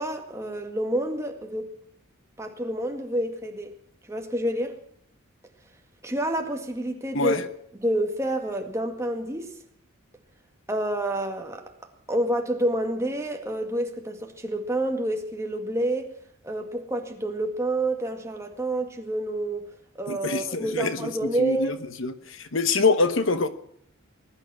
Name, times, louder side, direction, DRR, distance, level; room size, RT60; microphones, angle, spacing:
voice 1, 0.0-1.7 2.4-3.7 4.1-4.8 6.0-7.4 7.8-9.5 10.7-11.7 12.1-16.1 16.4-19.6 20.0-21.7, right 1 dB, 15° right, 1.9 m, -28 dB
voice 2, 20.1-21.1 21.4-23.5, left 3 dB, 65° left, 1.1 m, -25 dB
20.5 x 11.5 x 6.2 m
head